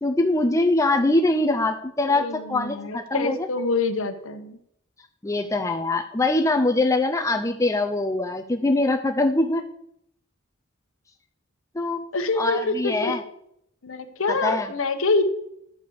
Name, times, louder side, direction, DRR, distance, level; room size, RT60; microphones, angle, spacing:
voice 1, 0.0-3.5 5.2-9.6 11.7-12.1 12.4-13.2 14.3-14.7, left 2 dB, 15° left, 5 dB, 0.4 m, -23 dB
voice 2, 2.1-4.6 12.1-13.1 13.8-15.2, left 3 dB, 65° left, 9 dB, 0.9 m, -26 dB
11.5 x 6.7 x 4.7 m, 0.75 s
head